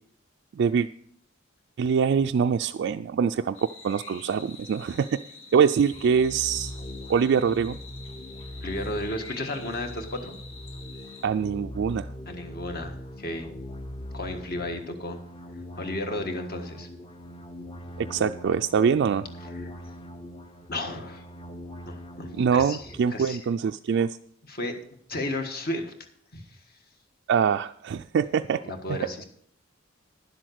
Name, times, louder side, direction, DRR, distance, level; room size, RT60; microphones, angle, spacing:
voice 1, 0.6-0.9 1.8-3.6 3.8-5.2 5.5-6.7 7.1-7.8 11.2-12.1 18.0-19.3 22.4-24.2 27.3-28.6, right 6 dB, 65° right, 7 dB, 0.3 m, -24 dB
sound 1, 3.5-11.3, left 4 dB, 80° left, 1.4 m, -47 dB
sound 2, 5.9-23.0, equal, 25° left, 0.8 m, -41 dB
voice 2, 8.6-10.3 12.3-13.5 14.1-15.2 15.7-16.9 19.5-19.7 20.7-21.2 21.9-22.8 23.1-23.4 24.5-24.7 25.1-25.9 26.3-26.4 28.6-29.2, left 1 dB, 50° left, 5 dB, 1.6 m, -33 dB
10.5 x 7.7 x 6.4 m, 0.67 s
head